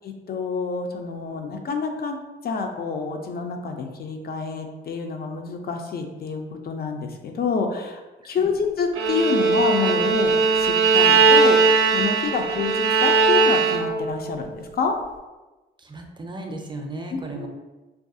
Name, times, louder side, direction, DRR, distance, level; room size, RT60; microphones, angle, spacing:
voice 1, 0.0-2.2 2.4-11.6 11.9-15.0 17.1-17.5, left 5 dB, 50° left, 4 dB, 0.4 m, -28 dB
Bowed string instrument, 8.9-14.1, right 4 dB, 80° right, 0.4 m, -19 dB
voice 2, 15.8-17.5, right 2 dB, 20° right, 2 dB, 0.5 m, -35 dB
2.3 x 2.3 x 2.6 m, 1.1 s
cardioid pair, 70°, 21 cm